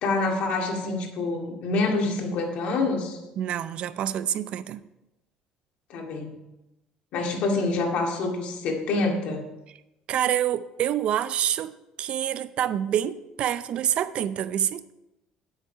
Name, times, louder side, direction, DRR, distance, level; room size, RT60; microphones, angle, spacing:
voice 1, 0.0-3.2 5.9-6.4 7.1-9.4, left 3 dB, 60° left, 1 dB, 2.1 m, -26 dB
voice 2, 3.4-4.8 10.1-11.7 12.0-14.8, right 10 dB, 50° right, 14 dB, 0.4 m, -27 dB
9.2 x 8.0 x 5.5 m, 0.96 s
cardioid pair, 155°, 2 cm